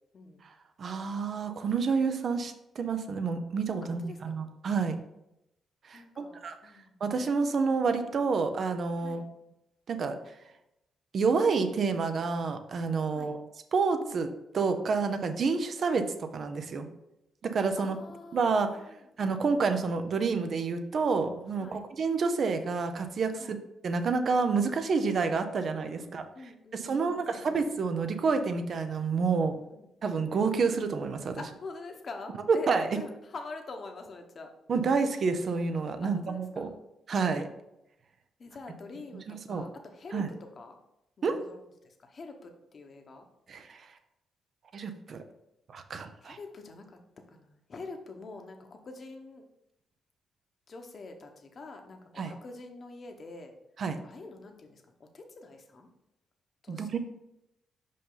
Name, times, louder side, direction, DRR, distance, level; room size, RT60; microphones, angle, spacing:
voice 1, 0.8-5.0 5.8-6.6 7.0-9.2 9.9-10.2 11.1-13.4 13.7-16.9 17.4-18.0 18.3-18.7 19.2-23.6 23.8-26.3 26.7-29.6 30.0-31.4 32.5-32.9 34.7-36.7 37.1-37.5 39.3-39.7 40.1-40.3 41.2-41.4 43.5-43.9 44.7-45.2 45.7-46.4 52.2-52.3 53.8-54.0 56.7-57.0, right 4 dB, 60° right, 8 dB, 0.7 m, -29 dB
voice 2, 3.8-4.5 5.9-7.0 9.0-9.3 13.1-13.3 17.8-19.0 21.6-21.8 23.4-23.6 26.0-27.5 29.4-29.9 31.3-32.7 32.9-34.5 36.0-36.8 38.4-40.8 41.2-43.3 46.2-47.0 47.3-49.4 50.7-53.5 54.0-55.9 56.6-57.0, left 3 dB, 50° left, 4 dB, 1.1 m, -46 dB
5.4 x 5.3 x 3.9 m, 0.85 s
cardioid pair, 65°, 0 cm